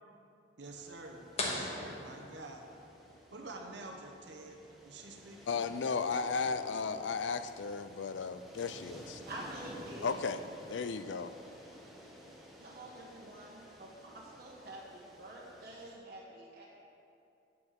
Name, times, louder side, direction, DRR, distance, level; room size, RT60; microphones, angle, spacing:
sound 1, 0.6-16.0, equal, ahead, 1.0 m, -53 dB
voice 1, 0.6-2.6 3.3-5.4, right 2 dB, 75° right, 2 dB, 1.0 m, -48 dB
sound 2, 1.4-3.0, left 2 dB, 35° left, 1.2 m, -39 dB
voice 2, 5.5-9.2 10.0-10.4 10.7-11.3, left 5 dB, 80° left, 12 dB, 0.4 m, -35 dB
voice 3, 9.3-10.2 12.6-16.6, right 1 dB, 55° right, -6 dB, 1.3 m, -47 dB
9.6 x 7.7 x 4.8 m, 2.7 s
head